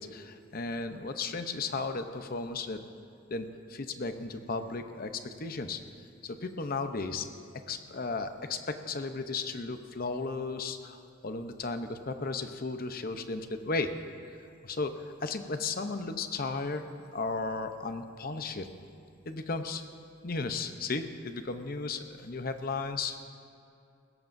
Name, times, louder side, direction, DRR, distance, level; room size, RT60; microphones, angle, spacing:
voice 1, 0.0-2.8 3.3-5.8 6.2-7.3 7.7-13.9 14.6-18.7 19.2-19.8 20.2-23.2, left 3 dB, 45° left, 8 dB, 0.8 m, -35 dB
21.0 x 17.0 x 2.7 m, 2.5 s
head